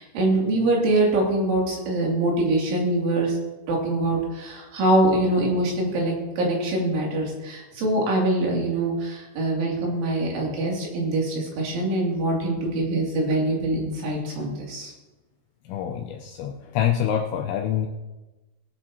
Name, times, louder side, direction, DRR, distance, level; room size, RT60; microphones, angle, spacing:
voice 1, 0.0-3.4 3.7-14.9, right 2 dB, 70° right, -2 dB, 5.1 m, -24 dB
voice 2, 15.7-17.9, left 10 dB, 80° left, 3 dB, 2.6 m, -26 dB
19.5 x 10.5 x 2.9 m, 1.1 s
omnidirectional pair, 5.9 m